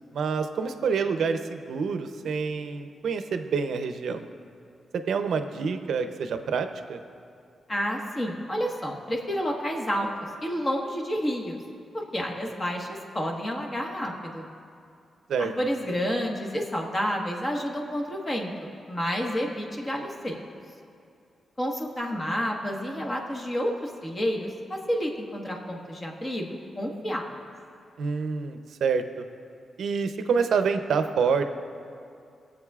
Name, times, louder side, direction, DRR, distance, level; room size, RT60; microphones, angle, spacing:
voice 1, 0.1-4.2 5.1-7.0 15.3-15.5 28.0-29.2 29.8-31.5, right 5 dB, 80° right, 8 dB, 0.6 m, -27 dB
voice 2, 7.7-10.1 10.4-11.6 11.9-14.5 15.4-18.5 18.9-20.4 21.6-27.3, equal, 25° left, 0 dB, 1.4 m, -30 dB
22.5 x 7.8 x 2.4 m, 2.4 s
wide cardioid pair, 125°, 0 cm